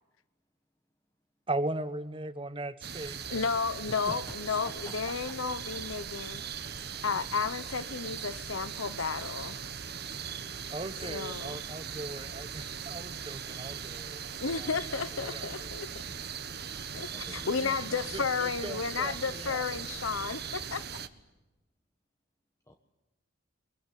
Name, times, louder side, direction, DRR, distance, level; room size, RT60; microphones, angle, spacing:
voice 1, 1.5-3.5 4.0-4.1 10.7-14.2 14.5-14.8 15.1-15.7 18.1-19.7, right 2 dB, 25° right, 1.2 m, -38 dB
sound 1, 2.8-21.1, right 7 dB, 50° right, 1.4 m, -40 dB
voice 2, 3.3-6.4 7.0-9.6 11.1-11.6 14.4-16.0 16.9-20.8, left 5 dB, 90° left, 1.0 m, -33 dB
voice 3, 17.1-18.0 22.7-22.8, left 1 dB, 15° left, 1.3 m, -47 dB
23.5 x 23.5 x 9.9 m
head